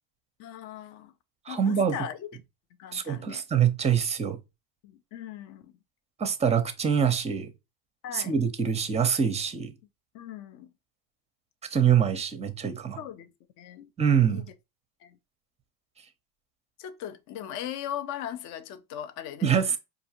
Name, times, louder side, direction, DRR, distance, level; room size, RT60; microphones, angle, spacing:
voice 1, 0.4-1.1 1.5-2.3 2.8-3.4 4.8-5.7 8.0-8.3 10.1-10.7 13.0-13.3 13.6-13.9 14.3-14.5 15.0-15.2 16.8-19.5, left 10 dB, 40° left, 0.4 m, -39 dB
voice 2, 1.5-2.0 2.9-4.4 6.2-7.5 8.1-9.7 11.7-13.0 14.0-14.4 19.4-19.8, right 7 dB, 15° right, 0.6 m, -24 dB
4.6 x 2.7 x 2.8 m
hypercardioid pair, 90°, 49 cm